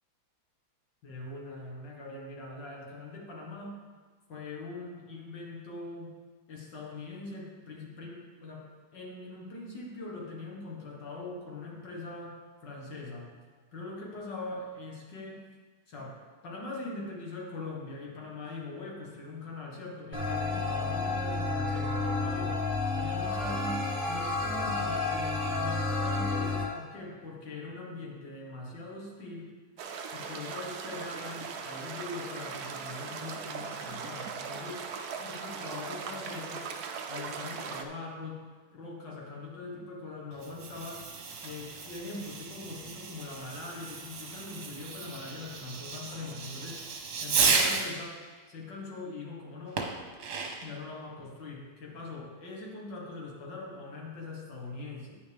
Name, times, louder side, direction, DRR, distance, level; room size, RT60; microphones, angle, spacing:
voice 1, 1.0-3.7 4.3-6.1 6.5-8.6 8.9-13.3 13.7-15.4 15.9-16.1 16.4-22.6 22.9-29.5 30.1-34.8 35.2-36.7 37.1-38.5 38.7-41.1 41.4-46.8 47.2-48.2 48.5-49.8 50.6-55.2, left 3 dB, 55° left, -2 dB, 2.2 m, -42 dB
sound 1, 20.1-26.6, left 3 dB, 5° right, 1.2 m, -30 dB
sound 2, 29.8-37.8, right 6 dB, 70° right, 0.9 m, -39 dB
Fireworks, 40.3-48.0 49.8-50.8, right 4 dB, 55° right, 1.4 m, -33 dB
10.0 x 9.4 x 3.5 m, 1.5 s
omnidirectional pair, 2.4 m